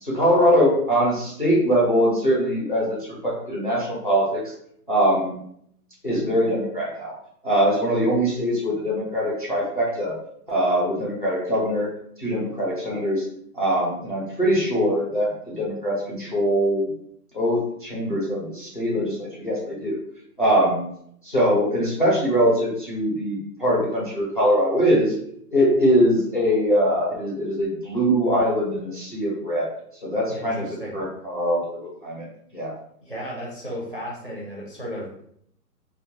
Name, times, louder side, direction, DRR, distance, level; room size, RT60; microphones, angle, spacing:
voice 1, 0.0-4.4 4.9-5.4 6.0-7.1 7.4-10.2 10.5-11.9 12.2-13.2 13.5-16.9 17.3-20.0 20.4-20.8 21.2-25.1 25.5-29.7 30.0-30.7 30.9-32.2 32.5-32.7, equal, 35° left, -5 dB, 0.4 m, -22 dB
voice 2, 30.3-31.0 33.0-35.2, equal, 40° right, -5 dB, 0.4 m, -34 dB
2.2 x 2.1 x 2.8 m, 0.69 s
hypercardioid pair, 170°, 48 cm